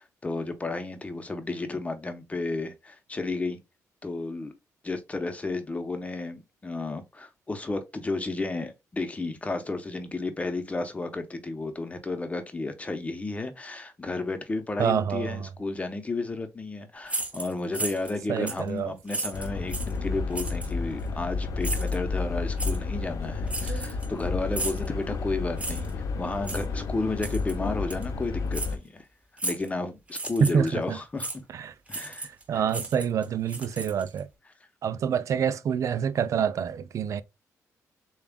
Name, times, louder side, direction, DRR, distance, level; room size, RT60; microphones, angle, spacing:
voice 1, 0.2-3.6 4.0-4.5 4.8-29.0 29.4-31.4 31.9-32.3 32.5-32.7, left 3 dB, 20° left, 0.8 m, -32 dB
voice 2, 14.8-15.5 18.3-18.9 23.7-24.0 30.4-31.0 31.5-31.7 32.2-34.3 34.8-37.2, right 7 dB, 55° right, 0.4 m, -27 dB
sound 1, 17.1-18.2 18.5-18.7 19.1-20.0 20.4-20.7 21.6-22.0 22.6-22.8 23.5-24.2 24.5-24.9 25.6-25.9 26.4-26.7 27.2-27.6 27.9-28.0 28.5-28.7 29.4-29.7 30.1-30.7 31.2-31.4 31.9-32.4 32.7-34.2, right 2 dB, 20° right, 0.9 m, -34 dB
sound 2, 19.3-28.8, left 4 dB, 65° left, 0.6 m, -31 dB
6.9 x 2.4 x 2.2 m
cardioid pair, 100°, 6 cm